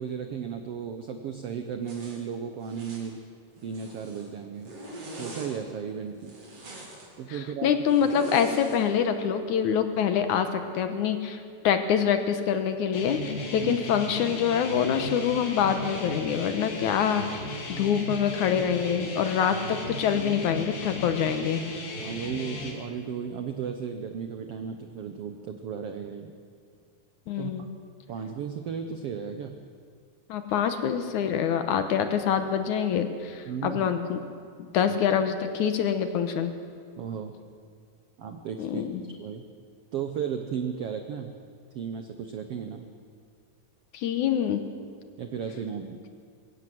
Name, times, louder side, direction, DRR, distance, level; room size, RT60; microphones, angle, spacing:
voice 1, 0.0-3.2 3.6-4.7 5.2-6.4 7.2-7.7 13.6-13.8 22.0-26.3 27.4-27.7 28.1-29.6 33.5-33.9 34.9-35.0 37.0-37.4 38.2-39.4 39.9-41.3 41.7-42.9 45.2-46.0, right 7 dB, 80° right, 7 dB, 1.3 m, -35 dB
Zipper (clothing), 1.8-2.2 2.6-3.1 3.6-4.3 4.6-5.5 6.2-7.1 7.9-8.9, right 1 dB, 45° right, 4.3 m, -42 dB
voice 2, 7.3-11.4 11.6-17.4 17.7-21.6 27.3-27.7 30.3-34.2 34.6-36.5 38.6-39.0 43.9-44.6, left 8 dB, 70° left, 8 dB, 2.2 m, -25 dB
sound 1, 12.9-22.7, left 1 dB, 85° left, 4.9 m, -36 dB
22.0 x 16.5 x 7.7 m, 2.2 s
omnidirectional pair, 4.1 m